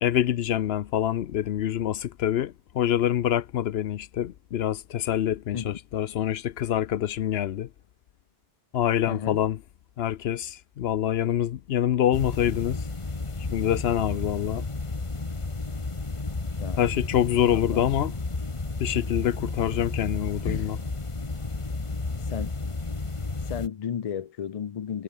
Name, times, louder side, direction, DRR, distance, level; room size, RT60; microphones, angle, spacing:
voice 1, 0.0-7.7 8.7-9.6 10.0-12.8 13.5-14.6 16.8-18.1 18.8-20.8, left 11 dB, 70° left, 0.9 m, -26 dB
voice 2, 9.1-9.4 16.6-16.8 17.5-17.9 20.4-20.7 22.3-22.5 23.5-25.0, left 8 dB, 45° left, 0.5 m, -33 dB
sound 1, 12.1-23.7, left 3 dB, 30° left, 1.4 m, -32 dB
omnidirectional pair, 1.1 m